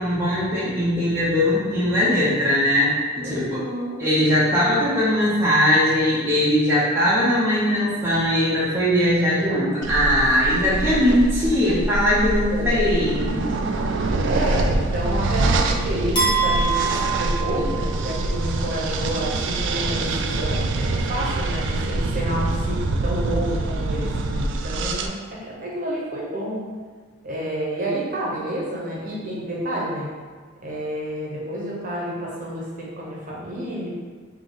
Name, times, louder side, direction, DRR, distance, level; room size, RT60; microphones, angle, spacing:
voice 1, 0.0-3.6 4.0-13.4, equal, 10° right, -9 dB, 0.7 m, -20 dB
voice 2, 3.2-4.0 12.5-12.8 14.3-26.6 27.2-30.1 30.6-33.9, equal, 40° right, -5 dB, 0.9 m, -29 dB
sound 1, 9.8-25.1, right 2 dB, 60° right, 0.3 m, -25 dB
sound 2, 16.2-18.3, right 5 dB, 25° left, 1.0 m, -24 dB
3.7 x 2.9 x 3.9 m, 1.5 s
head